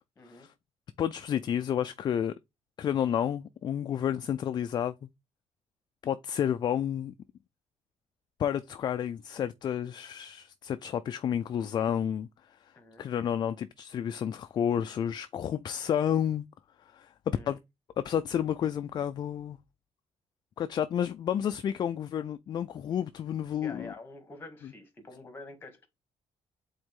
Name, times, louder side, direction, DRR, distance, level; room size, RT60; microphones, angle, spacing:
voice 1, 0.2-0.5 12.8-13.1 17.3-17.5 23.6-25.9, left 2 dB, 20° left, 1.8 m, -47 dB
voice 2, 1.0-2.3 2.8-5.0 6.0-7.1 8.4-12.3 13.0-16.4 16.9-17.6 18.0-19.6 20.6-23.9, left 9 dB, 40° left, 0.4 m, -30 dB
7.9 x 4.0 x 3.7 m
cardioid pair, 150°, 11 cm